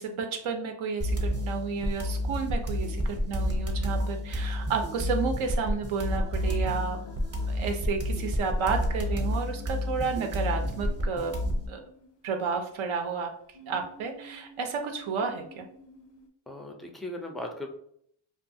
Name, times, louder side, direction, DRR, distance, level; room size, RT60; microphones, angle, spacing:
voice 1, 0.0-7.0 7.5-11.3 11.7-11.8 12.2-13.3 13.7-15.7, right 5 dB, 75° right, 4 dB, 0.6 m, -31 dB
sound 1, 1.0-11.7, equal, 30° right, 0.7 m, -30 dB
sound 2, 6.1-8.2 9.1-12.8 13.5-16.3, right 1 dB, 90° left, 0.6 m, -52 dB
voice 2, 16.5-17.7, left 1 dB, ahead, 3 dB, 0.3 m, -37 dB
2.4 x 2.3 x 2.6 m, 0.67 s
cardioid pair, 80°, 49 cm